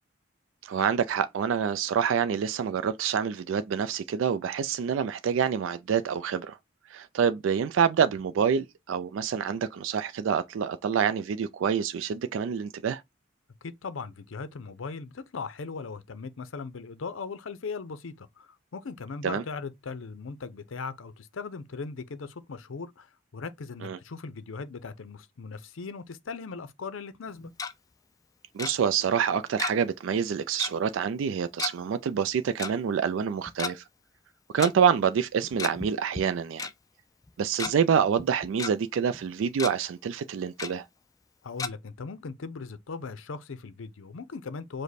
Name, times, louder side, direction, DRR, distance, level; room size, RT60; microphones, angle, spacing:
voice 1, 0.6-6.6 6.9-13.0 19.2-19.4 23.8-24.0 28.5-33.8 34.5-36.7 37.4-40.9, right 7 dB, 75° right, 0.3 m, -27 dB
voice 2, 13.6-27.5 41.4-44.8, left 4 dB, 80° left, 0.6 m, -39 dB
Tick-tock, 27.3-27.7 28.6-28.7 29.6-29.9 30.2-30.3 30.6-30.8 31.6-31.7 32.6-32.7 33.5-33.7 34.6-34.7 35.4-35.9 36.2-36.3 36.6-36.7 37.3-37.7 38.2-38.7 39.1-39.2 39.5-39.7 40.6-40.7 41.6-41.7, left 5 dB, 20° left, 0.4 m, -33 dB
5.1 x 2.1 x 4.1 m
head